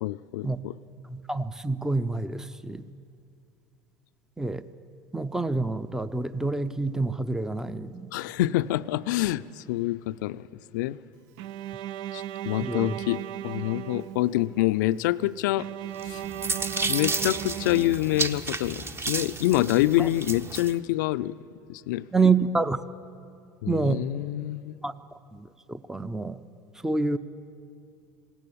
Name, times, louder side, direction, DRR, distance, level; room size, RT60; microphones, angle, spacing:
voice 1, 0.0-0.7 8.1-10.4 10.7-11.0 12.1-15.7 16.0-16.2 16.9-21.4 21.7-22.1 23.6-24.8, left 16 dB, 65° left, 0.5 m, -26 dB
voice 2, 1.1-2.8 4.4-4.6 5.1-8.1 12.6-13.0 20.0-20.1 22.1-22.8 23.7-24.0 24.8-24.9 25.3-26.4 26.8-27.2, right 3 dB, 5° right, 0.6 m, -27 dB
Bowed string instrument, 11.4-14.6 15.6-18.5, right 12 dB, 60° right, 0.4 m, -36 dB
sound 1, 16.0-20.7, right 3 dB, 20° right, 1.0 m, -32 dB
19.5 x 17.0 x 8.6 m
hypercardioid pair, 75°, 11 cm